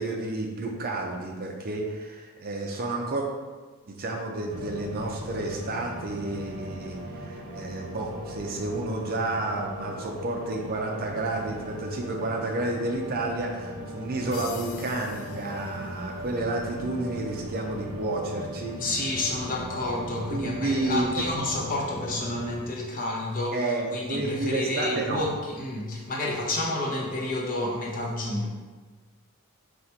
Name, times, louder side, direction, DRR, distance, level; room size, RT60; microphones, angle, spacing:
voice 1, 0.0-3.3 3.9-18.9 20.3-21.3 23.5-25.3, right 2 dB, 40° right, 1 dB, 0.5 m, -30 dB
sound 1, 4.5-22.6, equal, 90° right, 0.7 m, -39 dB
sound 2, 14.3-16.4, left 8 dB, 60° left, 0.3 m, -45 dB
voice 2, 18.8-28.5, left 2 dB, 40° left, -2 dB, 0.8 m, -30 dB
4.1 x 2.4 x 4.4 m, 1.3 s
head